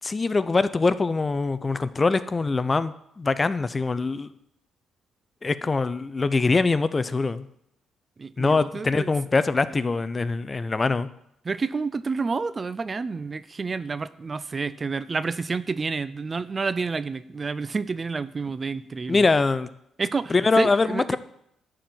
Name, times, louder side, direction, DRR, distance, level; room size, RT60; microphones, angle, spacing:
voice 1, 0.0-4.3 5.4-7.5 8.4-11.1 19.1-19.7 20.3-21.2, left 3 dB, 25° left, 15 dB, 0.5 m, -23 dB
voice 2, 8.2-9.1 11.5-19.2 20.0-21.2, right 4 dB, 30° right, 16 dB, 0.4 m, -29 dB
11.5 x 4.4 x 7.6 m, 0.76 s
cardioid pair, 90°, 0 cm